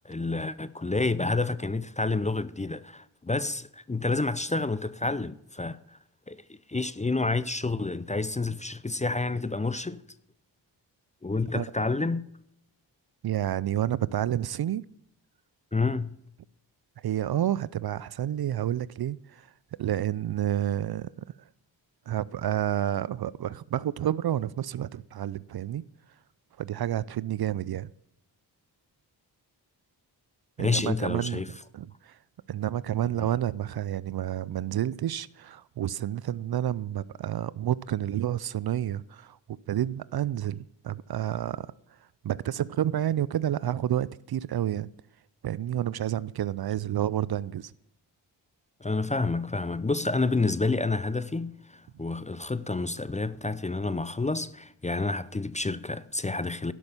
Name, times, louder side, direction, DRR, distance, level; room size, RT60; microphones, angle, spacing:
voice 1, 0.0-5.8 6.3-10.0 11.2-12.2 15.7-16.1 30.6-31.5 48.8-56.7, left 3 dB, 15° left, 0.5 m, -29 dB
voice 2, 13.2-14.8 17.0-19.5 19.8-21.1 22.1-25.8 26.6-27.9 30.6-31.4 31.7-32.2 32.5-41.7 42.2-44.9 45.4-47.7, right 11 dB, 55° right, 0.5 m, -29 dB
12.0 x 6.2 x 7.1 m
cardioid pair, 45°, 46 cm